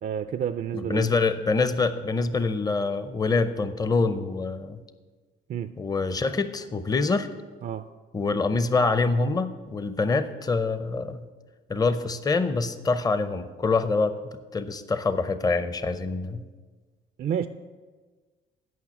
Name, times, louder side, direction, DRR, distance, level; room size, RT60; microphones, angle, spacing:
voice 1, 0.0-1.1 5.5-5.7 7.6-7.9 17.2-17.5, right 9 dB, 45° right, 10 dB, 0.4 m, -29 dB
voice 2, 0.7-4.8 5.8-7.3 8.1-11.2 11.7-16.5, left 3 dB, 20° left, 12 dB, 0.6 m, -25 dB
9.3 x 5.6 x 8.1 m, 1.4 s
cardioid pair, 90°, 20 cm